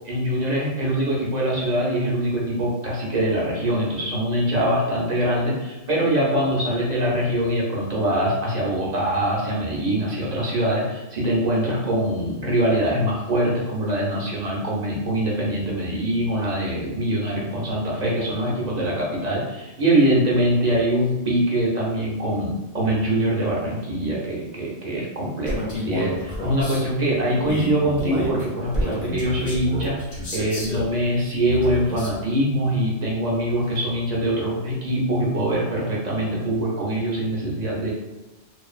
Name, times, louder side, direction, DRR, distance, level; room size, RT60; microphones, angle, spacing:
voice 1, 0.0-30.0 30.3-37.9, right 1 dB, 45° right, -4 dB, 0.7 m, -23 dB
Male speech man speaking, 25.5-26.8 27.4-30.9 31.5-32.2, left 1 dB, 60° left, 1.0 m, -30 dB
2.5 x 2.3 x 2.4 m, 1.1 s
omnidirectional pair, 1.1 m